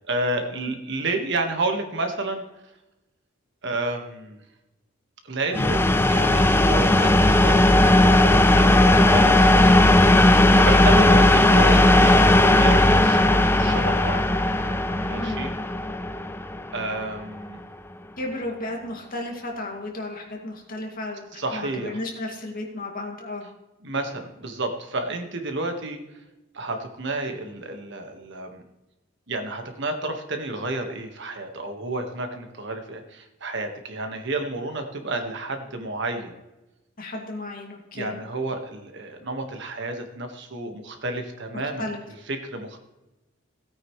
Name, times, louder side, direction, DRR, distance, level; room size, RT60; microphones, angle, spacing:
voice 1, 0.1-2.4 3.6-4.4 5.2-14.2 15.0-15.5 16.7-17.6 21.4-22.0 23.8-26.0 26.5-28.6 29.3-36.4 37.9-41.8 42.3-42.8, right 2 dB, 60° right, 5 dB, 1.6 m, -31 dB
sound 1, 5.5-17.2, left 1 dB, 10° left, 0.5 m, -17 dB
voice 2, 15.1-15.4 18.2-23.5 37.0-38.1 41.5-42.0, left 1 dB, 45° left, 0 dB, 2.3 m, -34 dB
17.0 x 9.1 x 3.2 m, 0.98 s
head